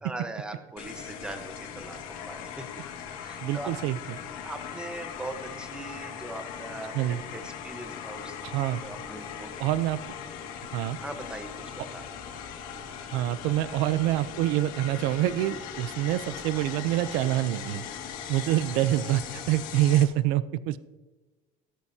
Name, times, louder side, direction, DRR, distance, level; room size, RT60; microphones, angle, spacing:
voice 1, 0.0-2.0 2.3-2.6 3.2-3.7 4.4-8.3 8.8-9.5 11.0-12.1, right 2 dB, 5° right, 5 dB, 1.1 m, -40 dB
sound 1, 0.8-20.0, left 8 dB, 60° left, 1.9 m, -39 dB
voice 2, 3.4-4.2 6.9-7.2 8.4-8.8 9.6-10.0 10.7-11.0 13.1-17.8 18.3-20.8, right 14 dB, 80° right, 15 dB, 0.6 m, -26 dB
16.0 x 13.5 x 2.8 m, 1.2 s
cardioid pair, 180°, 16 cm